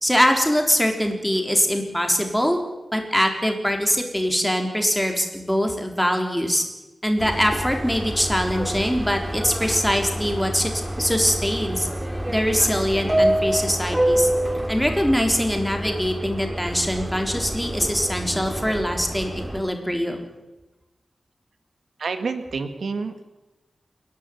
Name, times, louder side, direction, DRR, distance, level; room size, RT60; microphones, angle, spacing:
voice 1, 0.0-2.6 2.9-6.6 7.0-10.7 11.0-11.9 12.3-14.3 14.7-20.2, equal, 5° left, 4 dB, 4.0 m, -23 dB
Subway metro underground, 7.2-19.6, right 1 dB, 15° right, 2.3 m, -27 dB
voice 2, 22.0-23.4, right 4 dB, 80° right, 9 dB, 1.8 m, -29 dB
28.0 x 11.0 x 9.5 m, 1.0 s
wide cardioid pair, 85°, 0 cm